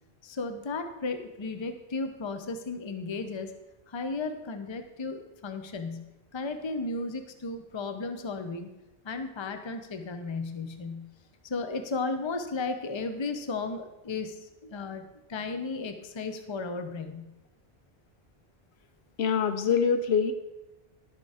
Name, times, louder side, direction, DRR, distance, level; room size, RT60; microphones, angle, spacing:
voice 1, 0.2-3.5 3.9-8.7 9.0-11.1 11.4-17.3, left 3 dB, 30° left, 8 dB, 0.7 m, -34 dB
voice 2, 19.2-20.3, left 6 dB, 90° left, 8 dB, 1.0 m, -24 dB
11.5 x 6.7 x 4.9 m, 0.99 s
omnidirectional pair, 1.0 m